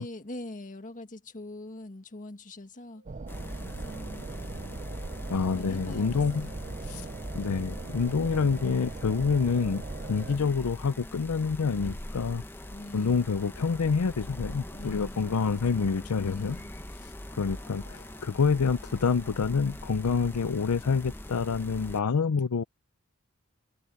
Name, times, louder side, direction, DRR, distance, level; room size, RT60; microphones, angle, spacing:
voice 1, 0.0-3.1 3.5-4.8 5.4-6.6 6.9-7.1 12.7-13.3 14.7-16.7, left 1 dB, 35° left, 1.7 m, -44 dB
sound 1, 2.9-10.3 12.3-19.6, right 3 dB, 65° right, 7.3 m, -60 dB
sound 2, 3.1-10.4, right 3 dB, 35° right, 0.5 m, -40 dB
sound 3, 3.3-22.0, left 1 dB, 10° left, 0.8 m, -42 dB
voice 2, 5.3-6.5 6.9-7.1 7.3-9.8 10.1-12.4 12.9-16.6 17.4-22.6, left 5 dB, 85° left, 0.5 m, -27 dB
head